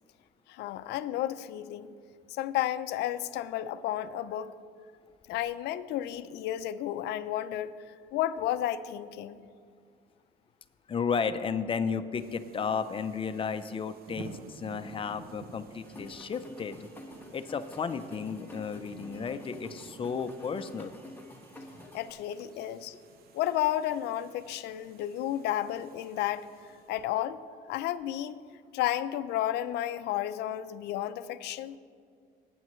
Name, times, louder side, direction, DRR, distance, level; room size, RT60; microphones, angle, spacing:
voice 1, 0.5-1.9 2.3-4.5 5.3-9.4 21.9-22.9 23.3-26.5 26.9-27.4 27.7-28.4 28.7-31.8, left 12 dB, 80° left, 13 dB, 0.5 m, -32 dB
voice 2, 10.9-16.9 17.3-20.9, left 6 dB, 30° left, 9 dB, 0.7 m, -33 dB
sound 1, 12.2-27.0, right 5 dB, 65° right, 0.8 m, -52 dB
sound 2, 15.8-22.1, left 1 dB, 10° left, 1.3 m, -49 dB
19.5 x 8.9 x 3.2 m, 2.1 s
cardioid pair, 110°, 17 cm